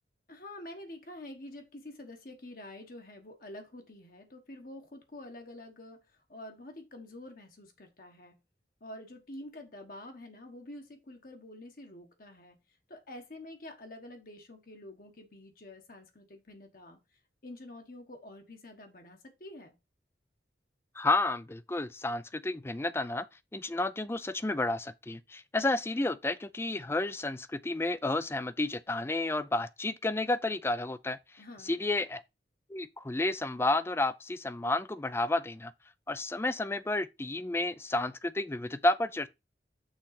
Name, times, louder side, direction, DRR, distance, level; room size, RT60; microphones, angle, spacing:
voice 1, 0.3-8.3 8.8-19.7 31.4-31.8, left 1 dB, 50° left, 1.2 m, -48 dB
voice 2, 21.0-23.3 23.5-31.2 31.6-32.2 32.7-35.7 36.1-39.3, left 2 dB, 15° left, 0.4 m, -31 dB
6.3 x 3.8 x 5.7 m
head